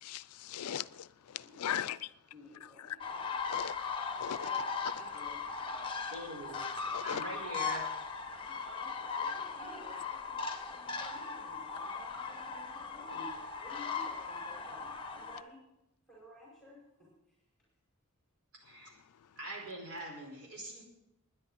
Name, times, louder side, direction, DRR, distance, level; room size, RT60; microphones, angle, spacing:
voice 1, 0.0-2.1 2.9-3.0 3.5-3.7 4.2-4.4 6.9-7.2, left 9 dB, 80° left, 18 dB, 0.4 m, -38 dB
voice 2, 1.4-1.9 2.3-3.2 3.5-3.7 4.2-5.4 8.3-15.6 16.1-17.4, left 1 dB, ahead, -6 dB, 5.3 m, -54 dB
sound 1, 3.0-15.4, left 5 dB, 25° left, 1.2 m, -38 dB
voice 3, 6.1-6.7 7.0-7.9 18.6-18.9 19.4-20.8, right 1 dB, 70° right, 0 dB, 4.8 m, -43 dB
20.5 x 10.0 x 4.1 m, 0.88 s
head